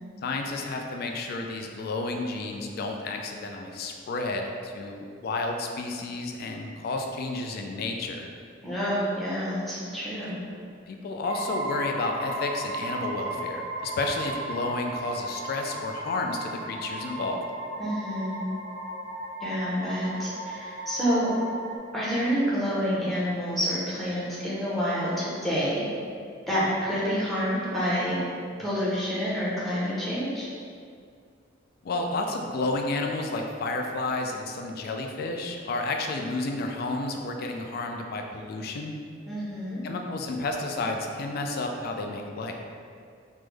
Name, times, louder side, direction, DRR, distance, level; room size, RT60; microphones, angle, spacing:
voice 1, 0.2-8.3 10.9-17.4 31.8-39.0 39.8-42.5, left 2 dB, 55° left, 2 dB, 0.3 m, -31 dB
voice 2, 8.6-10.3 17.8-18.4 19.4-21.3 21.9-25.8 26.5-28.2 28.6-30.5 39.3-39.8, equal, ahead, -9 dB, 0.7 m, -28 dB
sound 1, 11.2-21.8, right 1 dB, 80° right, 0.5 m, -35 dB
3.2 x 2.0 x 3.3 m, 2.2 s
head